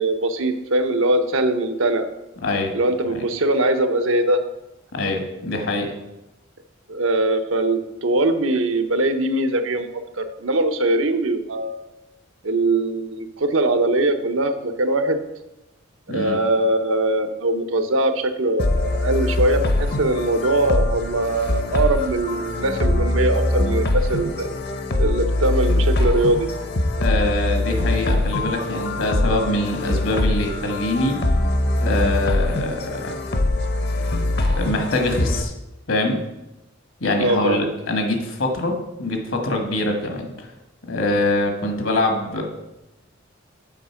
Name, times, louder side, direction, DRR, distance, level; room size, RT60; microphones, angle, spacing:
voice 1, 0.0-2.1 2.7-4.4 6.9-11.8 12.4-15.2 16.1-24.5 25.0-26.5 37.2-37.8, right 2 dB, 85° right, 7 dB, 0.7 m, -21 dB
voice 2, 2.4-2.7 4.9-5.9 16.1-16.4 27.0-31.2 31.8-33.1 34.6-35.5 35.9-36.2 37.0-40.5 40.9-42.4, left 2 dB, 75° left, 3 dB, 1.4 m, -24 dB
sound 1, 18.6-35.4, left 2 dB, 55° left, 0.7 m, -22 dB
7.9 x 4.3 x 5.7 m, 0.95 s
head